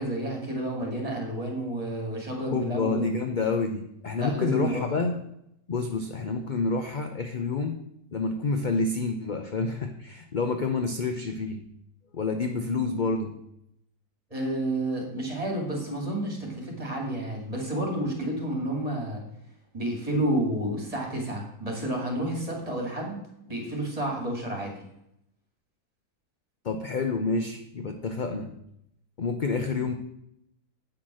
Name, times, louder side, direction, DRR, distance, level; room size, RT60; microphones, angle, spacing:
voice 1, 0.0-3.2 4.1-4.9 14.3-19.2 19.7-23.2 23.5-24.8, right 1 dB, 25° right, 0 dB, 2.6 m, -30 dB
voice 2, 2.5-5.2 5.7-7.8 8.1-11.6 12.1-13.3 26.6-28.5 29.2-30.0, left 4 dB, 45° left, 5 dB, 0.6 m, -28 dB
8.8 x 5.9 x 6.2 m, 0.78 s
omnidirectional pair, 1.6 m